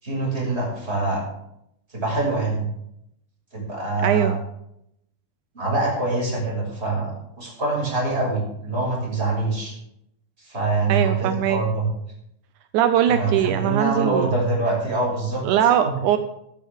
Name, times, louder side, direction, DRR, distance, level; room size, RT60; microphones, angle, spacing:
voice 1, 0.0-1.2 1.9-2.7 3.5-4.4 5.5-9.7 10.4-11.8 13.1-15.5, right 2 dB, 15° right, -3 dB, 6.1 m, -24 dB
voice 2, 4.0-4.4 10.9-11.6 12.7-14.3 15.4-16.2, right 10 dB, 80° right, 9 dB, 1.8 m, -20 dB
14.5 x 13.5 x 3.6 m, 0.78 s
omnidirectional pair, 4.3 m